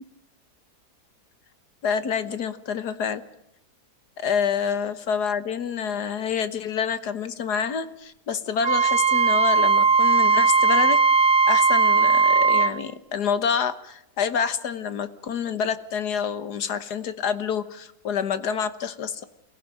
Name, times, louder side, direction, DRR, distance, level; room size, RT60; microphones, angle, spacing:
voice 1, 1.8-3.2 4.2-11.0 11.5-19.2, left 7 dB, 75° left, 12 dB, 1.8 m, -27 dB
Wind instrument woodwind instrument, 8.6-12.7, right 5 dB, 55° right, 1.5 m, -18 dB
28.5 x 16.0 x 7.5 m, 0.82 s
omnidirectional pair, 1.8 m